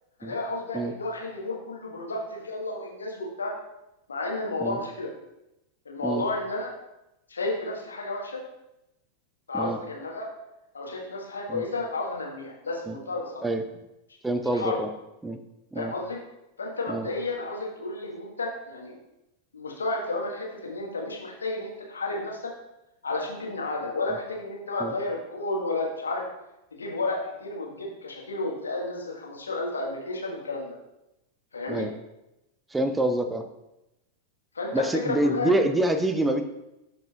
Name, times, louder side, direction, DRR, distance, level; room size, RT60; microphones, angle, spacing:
voice 1, 0.2-3.5 4.1-5.1 5.8-6.7 7.3-8.4 9.5-10.3 10.7-13.4 14.5-14.8 15.7-16.2 16.6-19.0 19.5-22.5 23.0-26.2 26.7-30.7 31.5-31.9 34.5-35.5, left 2 dB, 75° left, -1 dB, 1.4 m, -32 dB
voice 2, 14.2-14.9 15.2-15.4 15.7-15.9 16.9-17.1 24.8-24.9 31.7-31.9 32.7-33.5 34.7-36.4, right 1 dB, 10° right, 8 dB, 0.6 m, -26 dB
11.0 x 4.8 x 2.4 m, 0.92 s
figure-of-eight pair, 90°, 0 cm